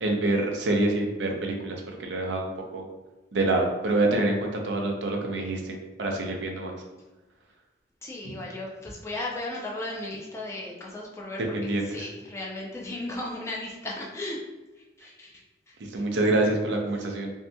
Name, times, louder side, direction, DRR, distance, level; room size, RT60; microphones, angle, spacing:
voice 1, 0.0-2.9 3.3-6.7 8.2-8.3 11.5-12.1 15.9-17.3, right 2 dB, 80° right, 1 dB, 0.5 m, -26 dB
voice 2, 8.0-14.4 14.8-16.0, left 2 dB, 15° left, -3 dB, 0.4 m, -36 dB
2.6 x 2.6 x 2.2 m, 1.2 s
head